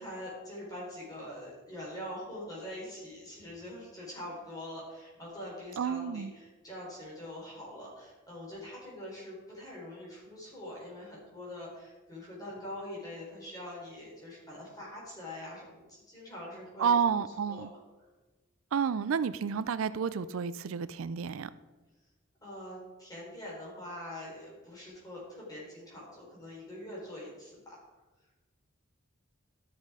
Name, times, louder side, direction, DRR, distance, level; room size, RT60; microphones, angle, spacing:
voice 1, 0.0-16.9 17.5-17.7 22.4-27.8, left 1 dB, 20° left, 3.8 m, -44 dB
voice 2, 5.8-6.3 16.8-17.7 18.7-21.5, right 6 dB, 80° right, 0.4 m, -30 dB
12.5 x 6.5 x 4.8 m
head